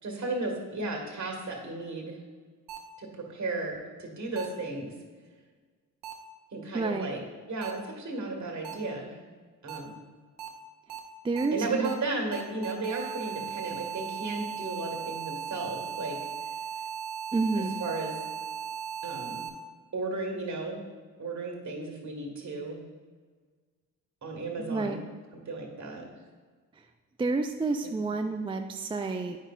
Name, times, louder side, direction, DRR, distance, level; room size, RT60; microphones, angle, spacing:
voice 1, 0.0-2.2 3.0-4.9 6.5-7.2 7.5-9.2 9.6-10.0 11.5-16.2 17.6-18.1 19.0-19.4 19.9-20.8 21.2-22.8 24.2-25.1 25.3-26.0 27.8-28.0, right 3 dB, 45° right, 1 dB, 1.8 m, -34 dB
sound 1, 2.7-2.8 4.4-4.5 6.0-6.1 7.6-7.7 8.6-8.7 9.7-9.8 10.4-10.5 10.9-11.0 11.4-11.5 11.8-11.9 12.3-19.5, right 8 dB, 75° right, 0.8 m, -37 dB
voice 2, 6.7-7.1 11.2-11.9 17.3-17.8 24.6-25.0 27.2-29.4, right 3 dB, 15° right, 5 dB, 0.3 m, -29 dB
8.8 x 5.5 x 2.4 m, 1.5 s
supercardioid pair, 55°, 40 cm